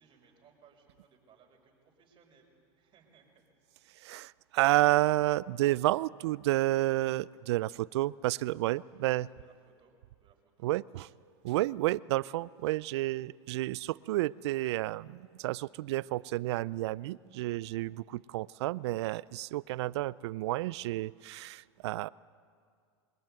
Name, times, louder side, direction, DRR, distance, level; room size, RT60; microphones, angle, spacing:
voice 1, 0.0-2.5 2.8-3.4 8.6-10.7, right 6 dB, 35° right, 1 dB, 6.0 m, -64 dB
voice 2, 3.9-9.3 10.6-11.1 11.4-22.1, right 17 dB, 70° right, 21 dB, 0.5 m, -30 dB
23.0 x 19.0 x 9.3 m, 2.1 s
hypercardioid pair, 105°, 14 cm